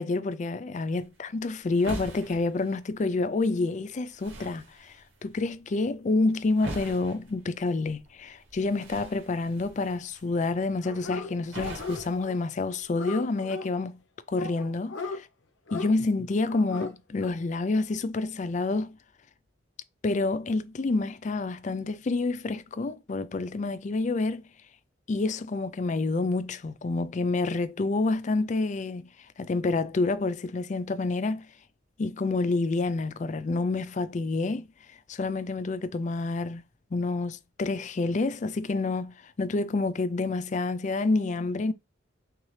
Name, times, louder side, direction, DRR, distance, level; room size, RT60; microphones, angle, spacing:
voice 1, 0.0-5.0 5.2-13.9 14.3-15.0 15.7-19.0 20.0-24.4 25.1-29.1 29.4-31.5 32.0-34.7 35.1-36.6 36.9-41.7, left 3 dB, 40° left, 0.4 m, -28 dB
sound 1, 1.0-13.0, right 1 dB, 85° right, 1.9 m, -45 dB
Dog, 10.8-11.3 11.6-12.3 12.6-13.7 14.3-15.2 15.7-15.9 16.5-16.9 17.2-17.3, left 4 dB, 80° left, 0.8 m, -36 dB
5.8 x 2.7 x 3.2 m
head